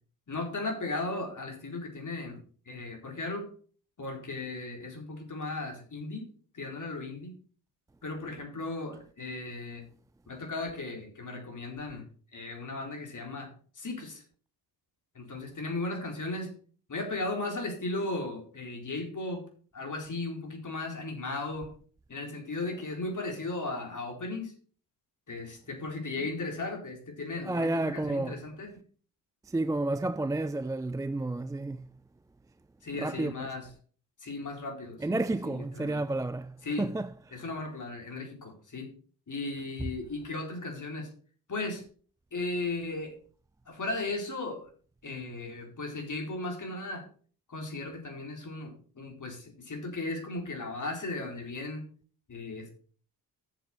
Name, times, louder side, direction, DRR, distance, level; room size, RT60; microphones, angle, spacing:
voice 1, 0.3-2.4 2.7-3.5 4.0-6.3 6.5-7.4 8.0-9.8 10.3-12.1 12.3-13.5 13.8-14.2 15.1-16.5 16.9-19.4 19.7-21.7 22.1-24.5 25.3-28.7 32.8-33.7 34.2-35.2 35.4-36.0 36.6-36.9 37.3-38.9 39.3-41.1 41.5-41.8 42.3-43.2 43.7-44.7 45.0-47.1 47.5-51.9 52.3-52.7, left 2 dB, 45° left, 4.2 m, -36 dB
voice 2, 27.4-28.4 29.5-31.9 32.9-33.5 35.0-37.4, right 2 dB, 10° right, 0.4 m, -31 dB
11.0 x 7.2 x 4.5 m
hypercardioid pair, 45°, 43 cm